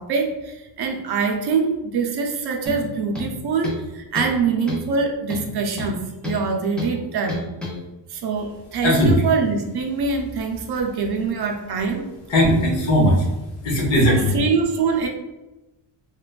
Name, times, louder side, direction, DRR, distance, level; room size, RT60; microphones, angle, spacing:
voice 1, 0.0-6.0 6.2-7.4 8.1-12.1 14.1-15.1, right 5 dB, 60° right, 3 dB, 0.5 m, -24 dB
sound 1, 2.7-2.9 3.2-3.9 4.2-4.4 4.7-4.9 5.3-6.4 6.8-7.0 7.3-7.8, left 3 dB, ahead, 0.3 m, -30 dB
voice 2, 8.8-9.2 12.3-13.3 13.6-14.4, equal, 80° left, -2 dB, 0.9 m, -18 dB
3.2 x 2.2 x 2.3 m, 1.0 s
wide cardioid pair, 175°, 45 cm